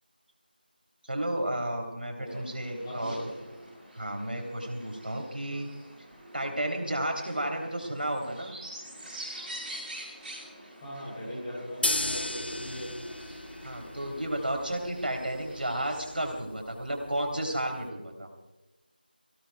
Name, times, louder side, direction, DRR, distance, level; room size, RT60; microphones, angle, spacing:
voice 1, 1.0-3.1 4.0-5.7 6.3-8.5 13.6-18.3, right 1 dB, 70° right, 2 dB, 3.2 m, -32 dB
sound 1, 2.3-16.3, right 1 dB, 5° right, 1.1 m, -46 dB
voice 2, 2.8-3.4 10.8-13.1, equal, 15° left, -6 dB, 3.1 m, -39 dB
sound 2, 11.8-17.9, left 1 dB, 80° left, 0.8 m, -36 dB
26.5 x 17.0 x 2.3 m, 1.1 s
figure-of-eight pair, 170°, 5 cm